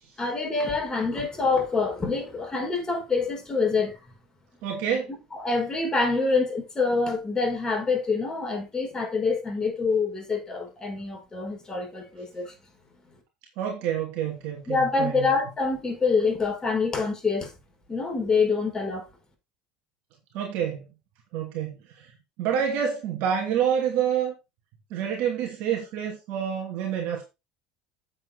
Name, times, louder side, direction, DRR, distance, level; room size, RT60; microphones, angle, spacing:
voice 1, 0.2-4.0 5.3-12.5 14.7-17.5 17.9-19.0, left 4 dB, 25° left, 5.2 m, -26 dB
voice 2, 4.6-5.1 13.6-15.3 20.3-20.8 21.3-22.1 22.4-24.3 24.9-27.2, right 8 dB, 65° right, 2.7 m, -28 dB
9.0 x 7.8 x 4.0 m
hypercardioid pair, 75°, 3 cm